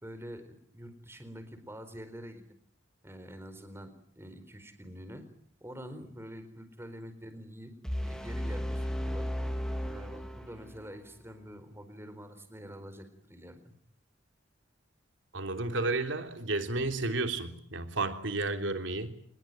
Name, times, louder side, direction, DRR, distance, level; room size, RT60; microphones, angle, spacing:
voice 1, 0.0-2.4 3.0-5.3 5.6-7.7 8.0-9.3 9.8-13.7, equal, 15° right, 9 dB, 4.4 m, -46 dB
sound 1, 7.8-10.9, equal, 5° left, 2.9 m, -34 dB
voice 2, 15.3-19.1, right 2 dB, 85° right, 7 dB, 3.3 m, -32 dB
26.5 x 21.5 x 9.3 m, 0.64 s
head